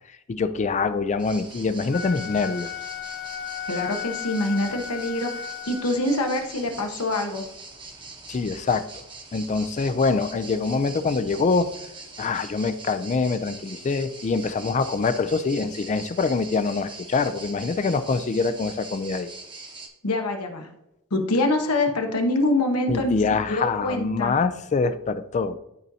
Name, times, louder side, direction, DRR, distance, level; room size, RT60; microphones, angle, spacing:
voice 1, 0.3-2.7 8.3-8.8 9.3-11.7 12.2-19.3 22.9-25.6, left 4 dB, 30° left, 12 dB, 0.3 m, -24 dB
sound 1, 1.2-19.9, right 3 dB, 20° right, 0.9 m, -42 dB
Wind instrument woodwind instrument, 1.8-6.2, left 8 dB, 55° left, 1.8 m, -35 dB
voice 2, 3.7-7.4 20.0-20.7 21.1-23.2 23.5-24.4, left 2 dB, 90° left, 3 dB, 1.1 m, -25 dB
12.0 x 4.0 x 2.8 m, 0.86 s
head